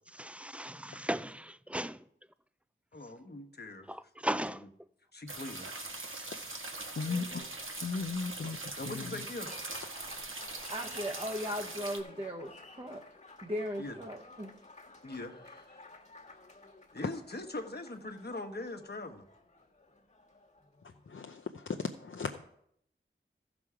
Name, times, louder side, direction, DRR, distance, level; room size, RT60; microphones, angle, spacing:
voice 1, 0.1-2.1 3.9-4.7 6.0-6.5, right 1 dB, 5° right, 0.4 m, -37 dB
voice 2, 2.9-3.9 5.1-5.7 7.1-7.5 8.8-9.5 13.8-14.0 15.0-15.8 16.9-19.3, left 2 dB, 50° left, 1.2 m, -42 dB
sound 1, 5.3-12.0, right 2 dB, 80° right, 1.4 m, -42 dB
voice 3, 7.0-7.3 7.8-8.6 8.8-9.1 21.1-22.5, left 4 dB, 70° left, 0.6 m, -36 dB
Applause, 9.5-21.2, left 3 dB, 35° left, 1.5 m, -53 dB
voice 4, 10.7-12.5 12.8-13.0 13.4-14.5, equal, 25° right, 0.9 m, -37 dB
15.0 x 6.1 x 4.8 m
wide cardioid pair, 50°, 21 cm